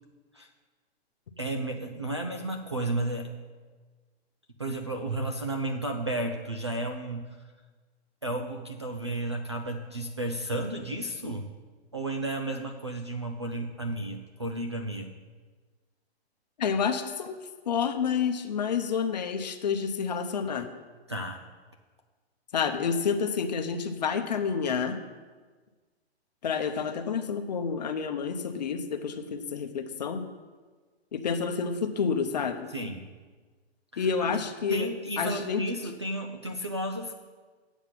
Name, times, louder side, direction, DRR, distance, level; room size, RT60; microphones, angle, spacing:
voice 1, 1.4-3.3 4.6-7.3 8.2-11.5 11.9-15.1 21.1-21.4 32.7-33.1 33.9-34.4 34.7-37.1, right 1 dB, 25° right, 4 dB, 0.4 m, -33 dB
voice 2, 16.6-17.4 17.7-20.7 22.5-25.0 26.4-30.2 31.1-32.7 34.0-34.9 35.2-35.6, left 6 dB, 40° left, 6 dB, 0.8 m, -29 dB
8.1 x 7.8 x 5.8 m, 1.4 s
hypercardioid pair, 175°, 32 cm